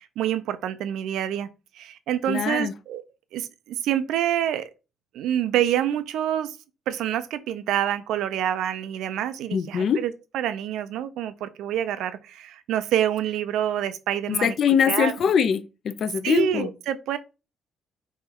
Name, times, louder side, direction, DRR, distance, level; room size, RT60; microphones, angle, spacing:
voice 1, 0.2-1.5 2.1-3.0 3.3-3.4 3.9-4.6 5.2-6.5 6.9-12.1 12.7-15.1 16.2-17.2, right 11 dB, 90° right, 0.4 m, -26 dB
voice 2, 2.3-2.7 9.5-10.0 14.3-16.7, left 7 dB, 50° left, 0.3 m, -23 dB
3.2 x 3.0 x 3.7 m
cardioid pair, 150°, 0 cm